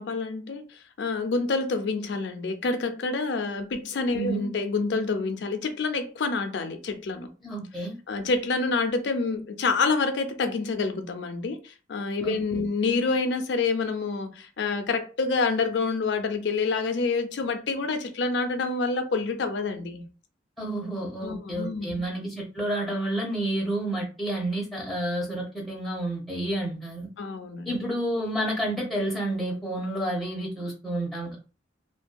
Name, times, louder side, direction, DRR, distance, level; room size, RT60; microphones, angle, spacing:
voice 1, 0.0-7.3 8.1-20.1 21.2-22.1 27.2-27.8, left 4 dB, 70° left, 0.4 m, -27 dB
voice 2, 4.1-4.5 7.4-8.0 12.2-12.6 20.6-27.1 27.7-31.4, right 1 dB, ahead, 0.7 m, -30 dB
2.6 x 2.2 x 2.2 m
head